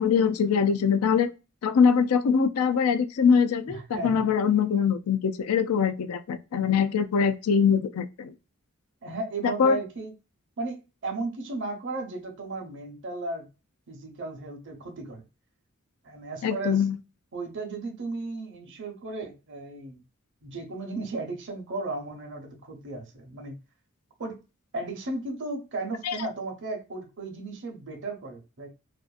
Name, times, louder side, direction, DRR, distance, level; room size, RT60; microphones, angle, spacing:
voice 1, 0.0-1.3 1.6-8.3 9.4-9.8 16.4-17.0 26.0-26.2, left 6 dB, 85° left, 0.4 m, -23 dB
voice 2, 3.6-4.3 9.0-10.1 10.6-13.5 13.9-15.2 16.0-16.9 17.3-20.0 20.4-23.6 24.2-24.4 24.7-28.7, right 3 dB, 60° right, 0.8 m, -35 dB
2.5 x 2.5 x 2.3 m
head